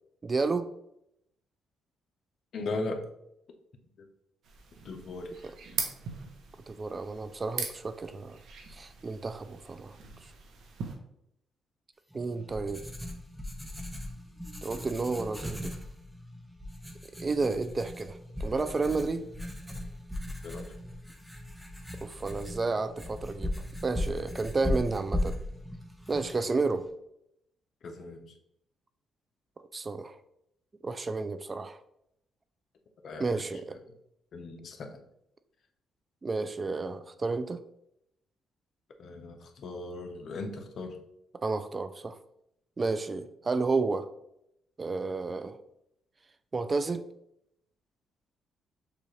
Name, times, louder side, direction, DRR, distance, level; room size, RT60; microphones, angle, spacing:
voice 1, 0.2-0.7 6.7-8.4 8.7-10.0 12.1-12.8 14.6-15.7 17.2-19.2 22.0-23.5 23.8-25.4 26.1-26.8 29.6-30.2 30.8-31.8 33.2-33.8 36.2-37.6 41.4-42.2 42.8-44.1 44.8-45.6 46.5-47.0, right 3 dB, 30° right, 11 dB, 0.3 m, -31 dB
voice 2, 2.5-3.0 4.8-5.4 20.4-20.7 24.6-24.7 27.8-28.3 33.0-33.4 33.9-34.0 34.3-35.0 39.0-41.0, left 3 dB, 60° left, 5 dB, 0.7 m, -38 dB
sound 1, 4.4-10.9, right 5 dB, 70° right, 0.8 m, -41 dB
Writing, 12.1-26.9, left 1 dB, ahead, 0.7 m, -38 dB
6.8 x 2.4 x 3.2 m, 0.79 s
cardioid pair, 90°, 0 cm